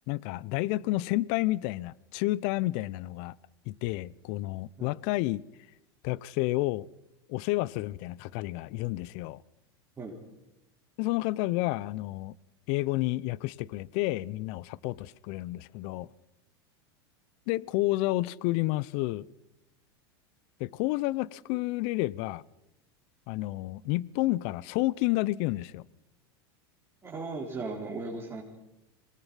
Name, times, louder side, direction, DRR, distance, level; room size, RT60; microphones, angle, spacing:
voice 1, 0.1-3.4 3.7-5.4 6.0-6.9 7.3-9.4 11.0-12.3 12.7-16.1 17.5-19.3 20.6-22.4 23.3-25.8, left 18 dB, 55° left, 0.7 m, -30 dB
voice 2, 27.0-28.4, right 3 dB, 20° right, 4.9 m, -37 dB
26.0 x 19.5 x 5.7 m
hypercardioid pair, 105°, 13 cm